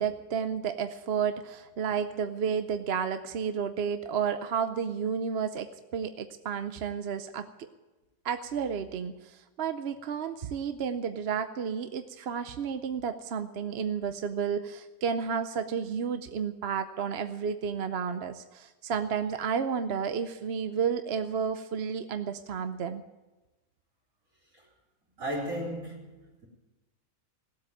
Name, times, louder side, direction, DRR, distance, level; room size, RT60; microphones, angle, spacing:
voice 1, 0.0-7.7 8.2-23.0, right 7 dB, 55° right, 0.8 m, -31 dB
voice 2, 25.2-26.5, equal, 70° right, 4.4 m, -35 dB
17.5 x 8.3 x 9.0 m
omnidirectional pair, 1.5 m